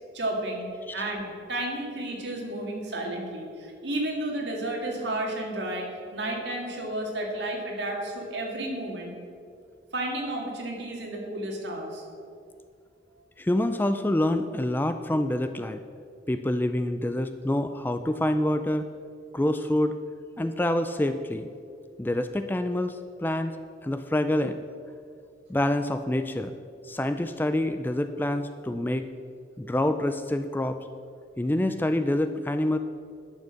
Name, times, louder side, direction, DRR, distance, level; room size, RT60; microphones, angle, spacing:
voice 1, 0.1-0.7 0.9-9.1 9.9-12.0, right 1 dB, 75° right, 0 dB, 2.2 m, -32 dB
voice 2, 13.4-15.8 16.3-18.9 19.3-19.9 20.4-21.5 22.0-23.6 23.8-24.6 25.5-26.5 26.8-29.1 29.6-30.8 31.4-32.8, left 1 dB, 10° left, 9 dB, 0.3 m, -26 dB
10.5 x 6.5 x 6.5 m, 2.4 s
head